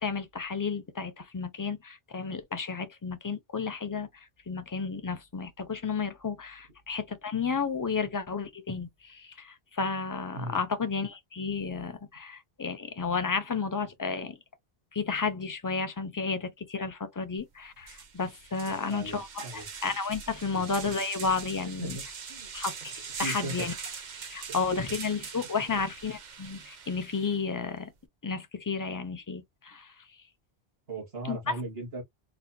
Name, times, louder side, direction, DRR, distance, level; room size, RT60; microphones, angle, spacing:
voice 1, 0.0-14.4 14.9-22.0 22.5-22.9 23.2-23.7 24.3-27.9 28.2-29.9 31.2-31.6, left 5 dB, 25° left, 0.5 m, -32 dB
sound 1, 17.4-17.5 17.8-27.4, right 6 dB, 50° right, 0.8 m, -42 dB
voice 2, 18.7-19.7 20.5-20.6 21.8-22.5 23.2-23.7 30.9-32.0, right 2 dB, 75° right, 2.0 m, -38 dB
4.1 x 2.4 x 2.7 m
omnidirectional pair, 1.0 m